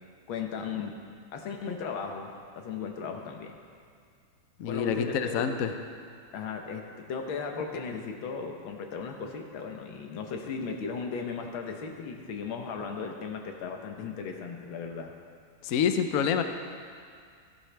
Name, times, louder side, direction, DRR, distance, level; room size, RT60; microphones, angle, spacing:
voice 1, 0.3-1.0 1.3-3.6 4.7-5.8 6.3-15.1, left 5 dB, 85° left, 3 dB, 1.8 m, -36 dB
voice 2, 4.6-5.7 15.6-16.4, left 7 dB, 65° left, 7 dB, 0.9 m, -27 dB
14.5 x 12.0 x 3.3 m, 2.2 s
omnidirectional pair, 2.1 m